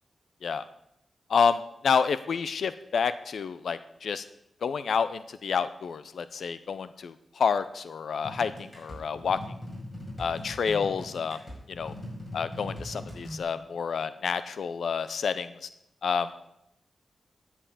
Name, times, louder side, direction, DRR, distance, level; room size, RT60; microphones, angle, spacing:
voice 1, 1.3-4.2 4.6-9.4 10.2-11.4 11.7-11.9 12.3-15.7 16.0-16.3, left 6 dB, 80° left, 13 dB, 0.5 m, -29 dB
sound 1, 8.2-13.4, left 1 dB, 35° left, 5.6 m, -40 dB
10.5 x 5.7 x 8.3 m, 0.81 s
cardioid pair, 75°, 0 cm